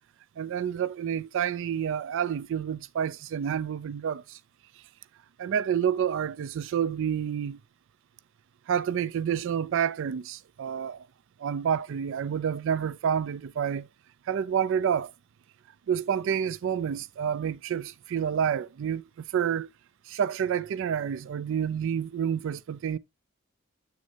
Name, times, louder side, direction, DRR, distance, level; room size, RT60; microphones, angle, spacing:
voice 1, 0.4-4.4 5.4-7.6 8.7-11.1 11.4-13.9 14.3-15.1 15.9-19.7 20.1-23.0, right 8 dB, 60° right, 0.3 m, -29 dB
8.2 x 6.4 x 2.7 m
head